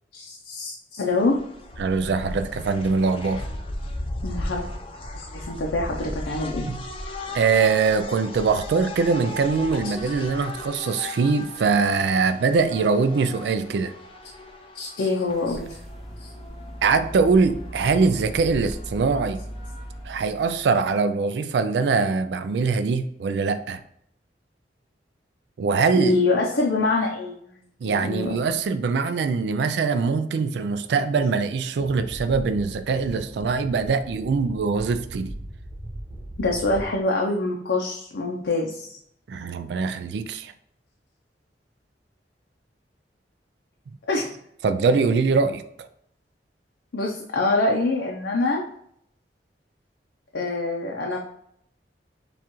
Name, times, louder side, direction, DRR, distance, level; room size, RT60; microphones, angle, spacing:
voice 1, 0.1-1.4 4.2-4.6 5.1-6.7 9.8-9.9 14.7-15.8 16.2-16.3 26.0-27.4 27.8-28.3 36.4-39.0 44.1-44.3 46.9-48.6 50.3-51.2, left 2 dB, 80° left, -1 dB, 0.6 m, -25 dB
sound 1, 1.1-20.0, left 1 dB, 30° left, 0.5 m, -37 dB
voice 2, 1.8-3.4 6.7-6.8 7.3-13.9 16.8-19.4 20.0-23.8 25.6-26.2 27.8-35.3 39.3-40.5 44.6-45.6, right 4 dB, 70° right, 10 dB, 0.3 m, -22 dB
sound 2, 15.1-21.0, equal, ahead, 0.9 m, -39 dB
sound 3, 28.6-28.7 30.8-30.9 31.4-36.8, right 1 dB, 45° right, 0.7 m, -39 dB
6.9 x 2.4 x 3.0 m, 0.68 s
head